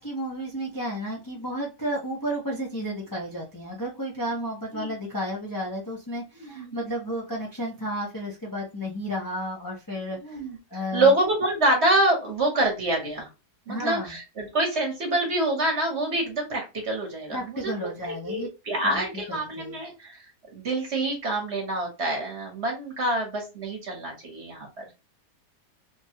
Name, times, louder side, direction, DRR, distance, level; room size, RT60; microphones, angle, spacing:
voice 1, 0.0-10.4 10.7-11.1 13.7-14.1 17.3-18.5 18.8-19.8, equal, 30° left, -3 dB, 0.3 m, -32 dB
voice 2, 6.4-6.7 10.2-10.6 10.9-13.3 13.7-17.7 18.0-20.2 20.5-24.9, right 1 dB, 45° right, 1 dB, 1.2 m, -26 dB
3.4 x 2.3 x 2.7 m, 0.27 s
omnidirectional pair, 1.8 m